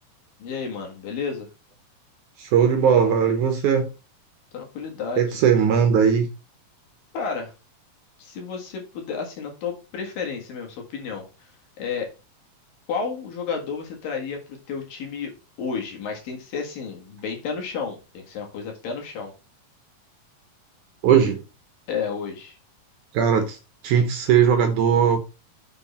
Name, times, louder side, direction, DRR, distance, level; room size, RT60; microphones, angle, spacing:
voice 1, 0.4-1.5 4.5-5.3 7.1-7.5 8.2-11.5 11.8-12.1 12.9-14.4 14.7-15.3 15.6-19.3 21.9-22.6, left 5 dB, 75° left, 3.4 m, -31 dB
voice 2, 2.4-3.9 5.2-6.3 21.0-21.4 23.1-23.6 23.8-25.2, right 7 dB, 70° right, 2.1 m, -19 dB
6.7 x 6.1 x 4.2 m
omnidirectional pair, 4.0 m